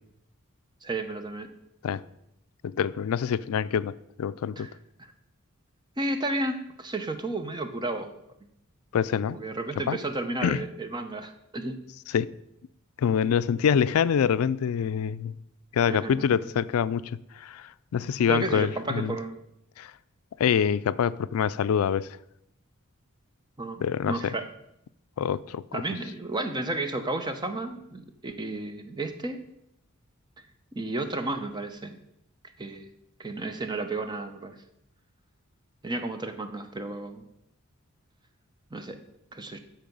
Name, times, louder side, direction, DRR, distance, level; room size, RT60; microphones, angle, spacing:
voice 1, 0.8-1.5 4.6-4.7 6.0-8.1 9.3-11.8 15.9-16.2 18.3-19.4 23.6-24.5 25.7-29.4 30.8-32.0 32.6-32.9 33.2-34.6 35.8-37.3 38.7-39.0 39.3-39.6, right 2 dB, 20° right, 0.7 m, -32 dB
voice 2, 2.6-4.7 8.9-9.4 9.9-10.0 10.4-10.6 12.1-12.3 13.0-15.3 15.7-19.2 19.8-19.9 20.4-22.2 23.8-24.4 25.2-25.8, left 7 dB, 85° left, 0.3 m, -26 dB
12.5 x 4.6 x 5.3 m
head